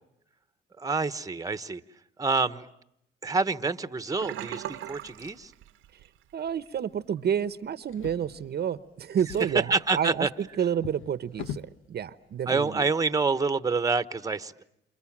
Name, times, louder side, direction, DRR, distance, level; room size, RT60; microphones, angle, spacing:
voice 1, 0.8-1.8 2.2-2.7 3.2-5.5 9.7-10.3 12.5-14.6, right 4 dB, 15° right, 1.1 m, -27 dB
Sink (filling or washing), 4.2-6.2 6.5-6.8 7.2-7.3, right 13 dB, 90° right, 1.1 m, -39 dB
voice 2, 6.3-12.9, right 8 dB, 55° right, 1.0 m, -30 dB
Drawer open or close, 7.8-8.8 9.2-11.8 12.7-12.8 13.2-13.3, left 8 dB, 85° left, 1.1 m, -42 dB
29.0 x 28.0 x 7.3 m
cardioid pair, 90°, 20 cm